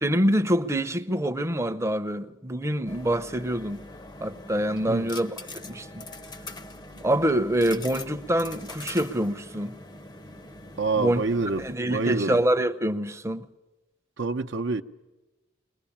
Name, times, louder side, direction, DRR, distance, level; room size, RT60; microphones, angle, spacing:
voice 1, 0.0-3.8 4.2-6.0 7.0-9.8 11.0-11.2 11.6-13.5, right 1 dB, 15° right, 0.7 m, -26 dB
sound 1, 2.9-11.8, left 2 dB, 20° left, 0.7 m, -43 dB
voice 2, 10.8-11.6 11.9-12.4 14.2-14.8, right 3 dB, 65° right, 0.7 m, -26 dB
22.5 x 20.0 x 8.7 m
head